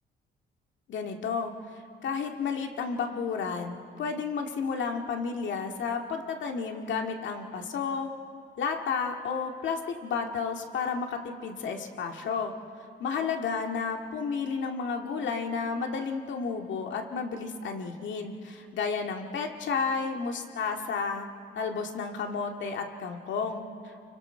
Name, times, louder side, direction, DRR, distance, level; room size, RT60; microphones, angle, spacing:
voice 1, 0.9-1.5 2.0-8.1 8.6-12.5 13.0-21.3 21.6-24.0, left 5 dB, 70° left, 3 dB, 2.0 m, -32 dB
30.0 x 24.5 x 4.5 m, 2.4 s
cardioid pair, 90°, 20 cm